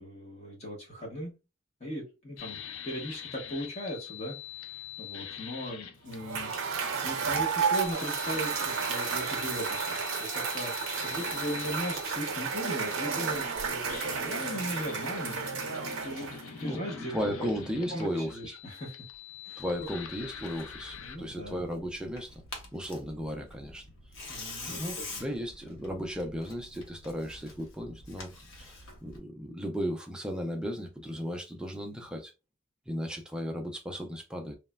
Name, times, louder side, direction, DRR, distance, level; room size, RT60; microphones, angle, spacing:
voice 1, 0.0-1.3 1.8-6.6 6.8-15.5 16.0-17.6 17.9-19.0 19.4-19.6 21.0-21.6 24.3-25.3, equal, 30° left, 0.8 m, -38 dB
sound 1, 2.4-21.2, left 9 dB, 90° left, 0.4 m, -44 dB
Cheering / Applause / Crowd, 6.1-16.6, right 6 dB, 80° right, 0.6 m, -32 dB
voice 2, 16.3-16.8 17.1-18.5 19.6-22.3 22.7-23.9 24.7-28.3 28.6-32.3 32.9-34.5, equal, 5° right, 0.3 m, -35 dB
Tearing, 19.6-29.2, left 3 dB, 75° left, 0.8 m, -46 dB
3.1 x 2.0 x 2.2 m
head